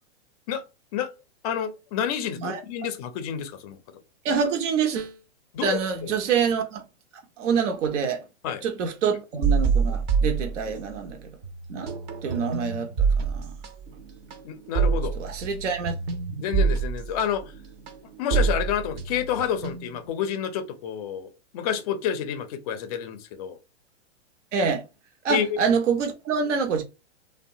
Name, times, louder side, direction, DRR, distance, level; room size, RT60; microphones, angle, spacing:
voice 1, 1.4-3.8 5.5-6.2 8.4-8.6 14.4-15.1 16.4-17.4 18.2-23.6 25.3-25.6, left 8 dB, 35° left, 0.4 m, -29 dB
voice 2, 4.2-5.2 5.6-6.8 7.4-8.2 8.6-11.3 11.7-11.9 12.2-13.5 15.1-15.9 16.3-16.4 24.5-24.8 25.2-26.8, right 6 dB, 75° right, 0.7 m, -26 dB
sound 1, 9.4-11.1 11.4-20.1, right 5 dB, 40° right, 0.5 m, -26 dB
2.8 x 2.2 x 2.6 m
hypercardioid pair, 135°, 36 cm